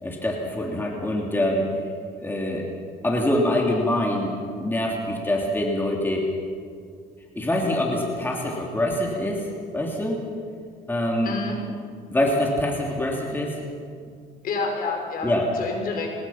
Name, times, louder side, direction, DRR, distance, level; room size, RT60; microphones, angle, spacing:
voice 1, 0.0-1.7 2.2-2.7 3.0-6.3 7.3-9.4 9.7-10.2 10.9-11.3 12.1-13.6 15.2-15.5, left 1 dB, 10° left, -1 dB, 3.1 m, -24 dB
voice 2, 11.2-11.6 14.4-16.1, left 4 dB, 60° left, 2 dB, 5.3 m, -29 dB
26.0 x 20.0 x 5.8 m, 2.2 s
cardioid pair, 110°, 17 cm